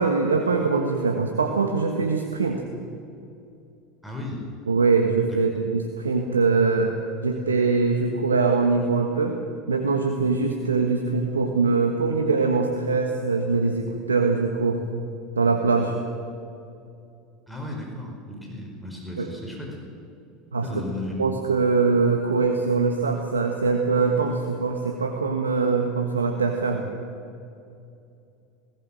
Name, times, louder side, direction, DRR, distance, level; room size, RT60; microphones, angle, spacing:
voice 1, 0.0-2.6 4.7-7.0 7.2-9.4 9.7-14.8 15.4-15.9 19.2-19.3 20.5-20.7 21.2-26.8, right 4 dB, 85° right, 4 dB, 1.3 m, -22 dB
voice 2, 4.0-4.4 5.3-5.4 17.5-19.8 20.6-21.4, left 1 dB, 5° left, 0 dB, 5.0 m, -35 dB
20.0 x 17.5 x 7.6 m, 2.6 s
hypercardioid pair, 75°, 0 cm